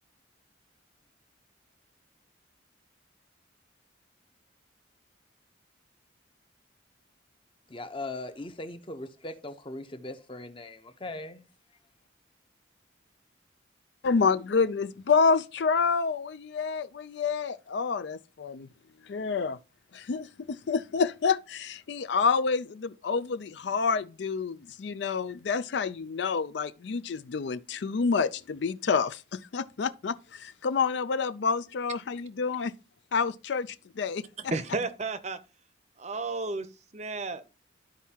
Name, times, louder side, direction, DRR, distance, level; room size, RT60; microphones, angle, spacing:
voice 1, 7.7-11.4, left 2 dB, 25° left, 0.7 m, -39 dB
voice 2, 14.0-18.7 19.1-19.6 19.9-32.7 33.1-34.2, left 5 dB, 65° left, 0.4 m, -28 dB
voice 3, 34.4-35.4 36.0-36.7 36.9-37.4, right 3 dB, 35° right, 0.7 m, -32 dB
13.0 x 4.6 x 2.9 m
head